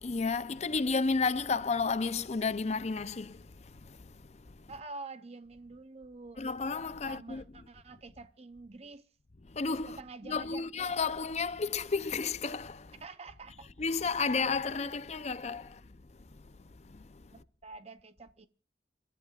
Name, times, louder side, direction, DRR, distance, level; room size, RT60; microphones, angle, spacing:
voice 1, 0.0-3.4 6.4-7.4 9.5-10.0 10.3-12.8 13.8-15.7, left 4 dB, 40° left, 0.6 m, -31 dB
voice 2, 4.7-6.4 7.0-9.1 9.9-10.7 13.0-13.7 17.3-18.5, right 3 dB, 35° right, 0.7 m, -47 dB
29.5 x 13.0 x 2.4 m
head